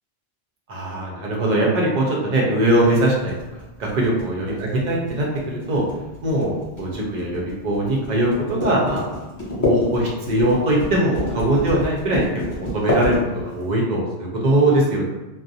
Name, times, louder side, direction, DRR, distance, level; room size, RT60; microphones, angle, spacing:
voice 1, 0.7-3.3 3.8-5.8 6.2-9.0 9.6-13.2 13.5-15.1, right 1 dB, 50° right, -3 dB, 0.6 m, -21 dB
sound 1, 2.7-13.7, left 2 dB, 25° left, 0.5 m, -28 dB
2.4 x 2.0 x 2.6 m, 1.1 s
omnidirectional pair, 1.1 m